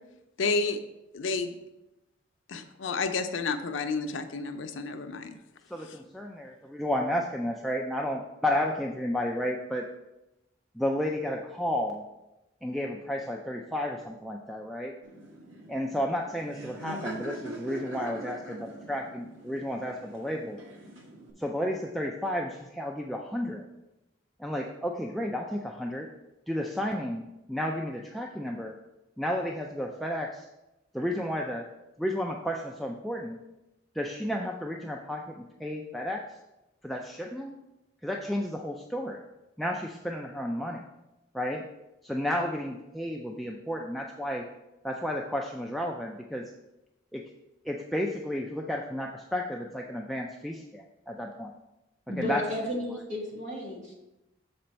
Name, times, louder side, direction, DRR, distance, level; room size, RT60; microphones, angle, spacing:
voice 1, 0.4-0.8 1.1-1.6 2.5-5.3 5.8-6.0, left 4 dB, 85° left, 7 dB, 0.6 m, -30 dB
voice 2, 5.7-9.9 10.7-12.0 12.6-15.0 15.7-20.6 21.4-23.6 24.4-26.1 26.5-28.8 29.2-30.5 30.9-31.7 32.0-33.4 33.9-36.4 36.8-37.6 38.0-39.2 39.6-40.8 41.3-41.7 42.0-44.5 44.8-46.5 47.1-47.2 47.6-51.5 52.2-52.5, left 1 dB, ahead, 0 dB, 0.3 m, -32 dB
Laughter, 15.0-21.3, right 1 dB, 85° right, 1.4 m, -42 dB
voice 3, 52.1-53.9, left 1 dB, 40° right, -3 dB, 1.9 m, -33 dB
6.8 x 4.4 x 5.2 m, 0.95 s
head